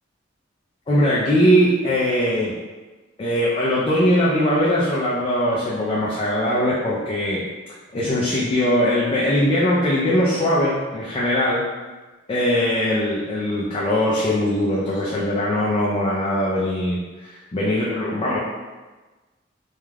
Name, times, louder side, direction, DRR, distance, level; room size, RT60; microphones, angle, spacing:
voice 1, 0.9-2.5 3.2-7.4 7.9-11.6 12.3-18.4, equal, 30° left, -6 dB, 0.4 m, -21 dB
2.3 x 2.2 x 3.2 m, 1.2 s
head